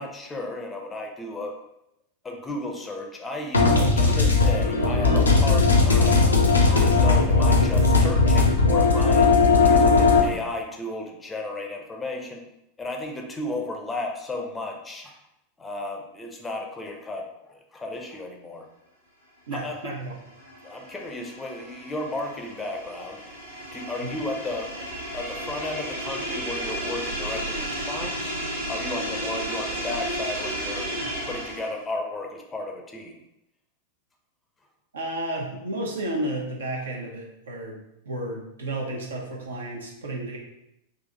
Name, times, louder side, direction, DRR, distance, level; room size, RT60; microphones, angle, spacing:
voice 1, 0.0-1.6 2.2-6.2 6.7-9.3 9.6-12.4 12.8-15.1 15.6-18.7 19.5-19.9 20.6-23.2 23.7-24.7 25.1-28.3 28.7-30.9 31.2-33.2, left 2 dB, 15° left, 2 dB, 0.7 m, -34 dB
sound 1, 3.5-10.2, left 3 dB, 80° left, 0.7 m, -18 dB
voice 2, 19.5-20.1 24.0-24.1 34.9-37.7 38.0-40.4, right 1 dB, 70° right, -1 dB, 1.0 m, -32 dB
sound 2, 19.9-31.8, right 1 dB, 85° right, 1.2 m, -33 dB
3.9 x 2.8 x 3.9 m, 0.83 s
figure-of-eight pair, 90°, 0 cm